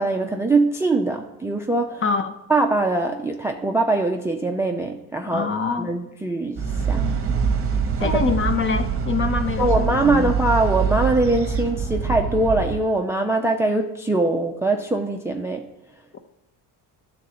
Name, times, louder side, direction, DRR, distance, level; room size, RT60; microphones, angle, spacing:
voice 1, 0.0-2.0 2.5-5.5 5.8-7.1 8.0-8.3 9.6-15.7, right 2 dB, 5° right, 4 dB, 0.4 m, -22 dB
voice 2, 2.0-2.4 5.2-5.9 8.0-10.3 16.1-16.2, left 5 dB, 30° left, 8 dB, 0.7 m, -25 dB
sound 1, 6.6-12.8, right 5 dB, 30° right, 0.9 m, -24 dB
10.5 x 3.9 x 6.6 m, 0.88 s
cardioid pair, 120°, 43 cm